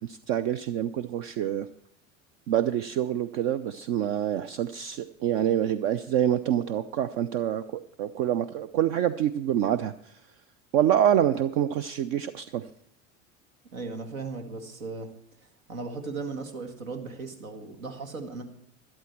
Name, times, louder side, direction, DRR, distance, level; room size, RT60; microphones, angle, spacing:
voice 1, 0.0-1.7 2.5-9.9 10.7-12.7, right 10 dB, 55° right, 12 dB, 0.7 m, -26 dB
voice 2, 13.7-15.1 15.4-18.4, right 4 dB, 80° right, 5 dB, 1.9 m, -37 dB
12.5 x 11.5 x 4.5 m, 0.70 s
hypercardioid pair, 80°, 40 cm